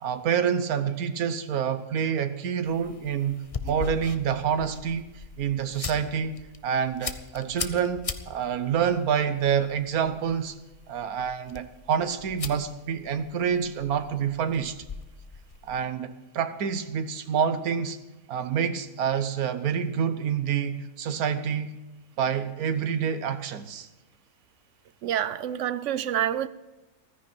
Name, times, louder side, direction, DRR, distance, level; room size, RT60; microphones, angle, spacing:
voice 1, 0.0-10.6 10.9-14.8 15.6-18.0 18.3-21.8 22.2-23.9, right 7 dB, 85° right, 1.4 m, -27 dB
sound 1, 2.6-15.9, left 5 dB, 35° left, 0.6 m, -40 dB
voice 2, 25.0-26.5, right 10 dB, 65° right, 0.8 m, -27 dB
15.0 x 13.5 x 4.5 m
omnidirectional pair, 1.5 m